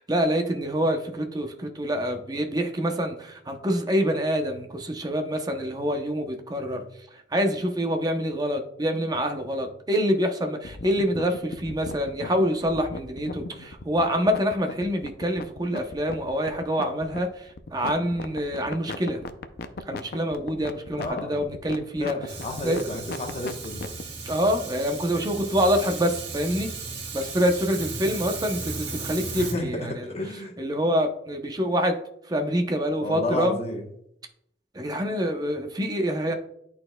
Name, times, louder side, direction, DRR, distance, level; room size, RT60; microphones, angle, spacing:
voice 1, 0.0-6.8 7.3-19.2 19.9-22.2 22.6-22.8 24.2-26.7 27.1-30.0 30.6-32.0 32.3-33.6 34.7-36.4, equal, 25° right, 4 dB, 0.7 m, -26 dB
sound 1, 10.6-24.0, left 3 dB, 60° left, 0.5 m, -37 dB
voice 2, 21.0-21.5 22.0-23.9 29.3-29.6 29.9-30.6 33.0-33.9, left 1 dB, 35° left, 3 dB, 1.0 m, -32 dB
Fire, 22.3-29.5, right 3 dB, 85° right, 1.5 m, -36 dB
11.0 x 4.2 x 2.2 m, 0.75 s
head